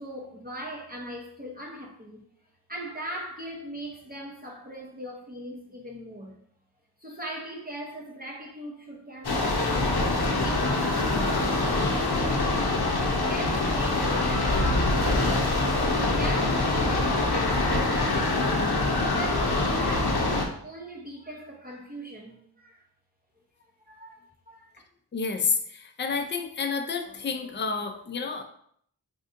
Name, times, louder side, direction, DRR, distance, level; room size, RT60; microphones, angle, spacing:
voice 1, 0.0-2.2 2.7-6.4 7.0-12.4 13.1-15.6 15.9-18.7 19.1-22.8 23.8-24.2 24.5-24.8, equal, 20° right, 0.6 m, -40 dB
sound 1, 9.2-20.5, left 2 dB, 60° left, 0.7 m, -24 dB
voice 2, 25.1-28.4, left 5 dB, 25° left, 0.4 m, -29 dB
3.5 x 2.7 x 2.5 m
wide cardioid pair, 45°, 43 cm